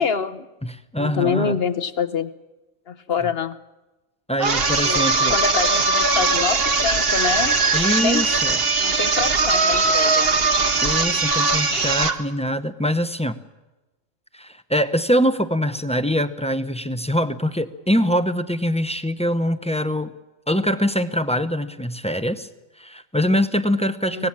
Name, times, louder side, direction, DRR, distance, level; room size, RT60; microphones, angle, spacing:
voice 1, 0.0-0.5 1.0-2.3 2.9-3.6 4.8-8.2 8.8-10.4 24.1-24.3, left 6 dB, 50° left, 12 dB, 1.0 m, -26 dB
voice 2, 0.6-1.6 4.3-5.3 7.7-8.6 10.8-13.4 14.3-20.1 20.5-22.5 22.8-24.3, equal, 5° left, 10 dB, 0.6 m, -23 dB
sound 1, 4.4-12.2, right 4 dB, 45° right, 1.4 m, -20 dB
25.0 x 18.5 x 7.4 m, 1.1 s
omnidirectional pair, 1.4 m